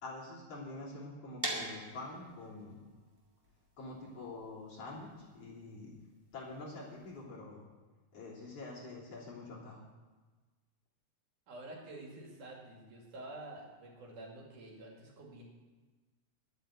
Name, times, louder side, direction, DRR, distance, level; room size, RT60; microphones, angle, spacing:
voice 1, 0.0-2.8 3.8-5.9 6.3-7.6 8.1-9.8, left 2 dB, 50° left, -6 dB, 4.3 m, -46 dB
sound 1, 1.4-7.2, right 1 dB, 10° right, 1.8 m, -44 dB
voice 2, 11.5-15.4, right 2 dB, 85° right, -1 dB, 4.0 m, -49 dB
11.0 x 9.1 x 7.9 m, 1.3 s
omnidirectional pair, 3.5 m